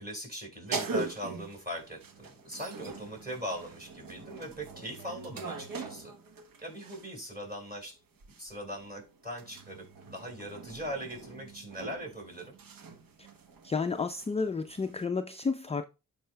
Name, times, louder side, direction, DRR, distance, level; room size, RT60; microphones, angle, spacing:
voice 1, 0.0-6.1 6.6-8.0 8.4-12.5, equal, 25° right, 4.5 m, -40 dB
sound 1, 0.7-7.2 8.2-15.1, right 4 dB, 70° right, 1.0 m, -42 dB
voice 2, 13.6-15.8, left 4 dB, 20° left, 0.4 m, -31 dB
12.5 x 4.8 x 2.2 m
supercardioid pair, 45°, 36 cm